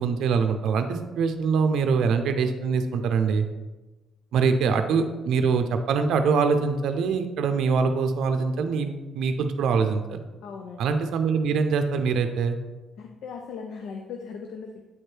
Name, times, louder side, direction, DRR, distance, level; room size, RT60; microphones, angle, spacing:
voice 1, 0.0-3.5 4.3-10.2 10.8-12.6, right 5 dB, 80° right, 7 dB, 0.5 m, -24 dB
voice 2, 10.4-11.0 13.0-14.9, left 5 dB, 80° left, 3 dB, 0.5 m, -39 dB
8.5 x 3.3 x 4.5 m, 1.1 s
cardioid pair, 90°, 0 cm